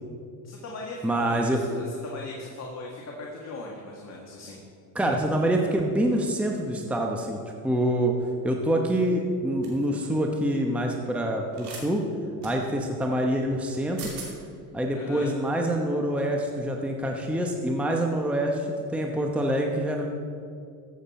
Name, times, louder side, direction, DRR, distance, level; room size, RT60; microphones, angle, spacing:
voice 1, 0.4-4.6 14.9-15.3, left 2 dB, 35° left, -2 dB, 1.7 m, -39 dB
voice 2, 1.0-1.6 4.9-7.4 7.6-8.1 8.4-12.0 12.4-14.0 14.7-20.1, right 1 dB, 5° right, 1 dB, 0.9 m, -26 dB
sound 1, 9.6-9.9 11.5-11.8 12.4-12.5 13.7-13.8 14.0-14.3, right 5 dB, 60° right, 3.1 m, -40 dB
14.5 x 7.5 x 4.3 m, 2.4 s
supercardioid pair, 105°, 43 cm